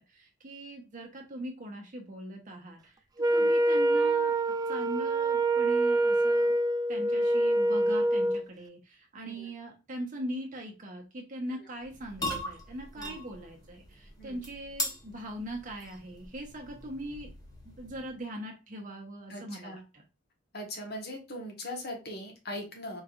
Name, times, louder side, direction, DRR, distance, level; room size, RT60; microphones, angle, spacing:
voice 1, 0.1-3.0 3.3-4.3 4.7-6.6 6.9-17.3 17.6-20.0, right 1 dB, 40° right, 0 dB, 0.7 m, -40 dB
Wind instrument woodwind instrument, 3.2-8.4, right 1 dB, 20° right, 0.3 m, -25 dB
voice 2, 9.1-9.5 11.5-11.6 12.9-13.2 14.2-14.4 19.3-19.8 20.5-23.0, left 1 dB, 55° left, 2 dB, 1.3 m, -40 dB
sound 1, 11.8-18.2, left 1 dB, 20° left, 1.0 m, -40 dB
4.6 x 3.1 x 2.4 m, 0.30 s
head